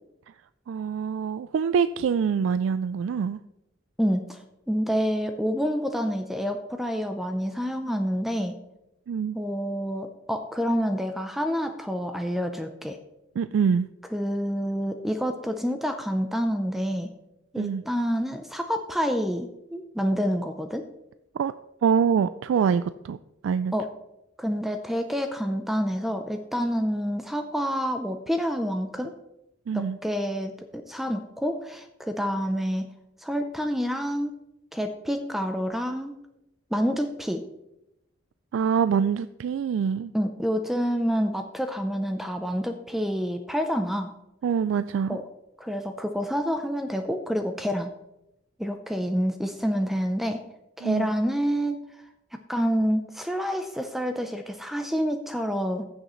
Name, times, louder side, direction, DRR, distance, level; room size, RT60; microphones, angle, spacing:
voice 1, 0.7-3.4 9.1-9.4 13.4-13.9 17.6-17.8 21.3-21.5 21.8-23.2 23.4-23.7 29.7-30.0 38.5-40.1 44.4-45.2 50.8-51.1, right 6 dB, 85° right, 13 dB, 0.3 m, -25 dB
voice 2, 4.0-4.4 4.7-8.5 9.3-13.0 14.1-17.1 17.5-20.8 23.7-23.9 24.4-29.1 29.7-32.9 33.2-34.3 34.7-36.1 36.7-37.4 40.1-44.1 45.1-45.2 45.6-47.9 48.6-50.4 50.8-51.8 52.3-55.8, equal, ahead, 6 dB, 0.5 m, -28 dB
15.0 x 6.5 x 3.1 m, 0.87 s
head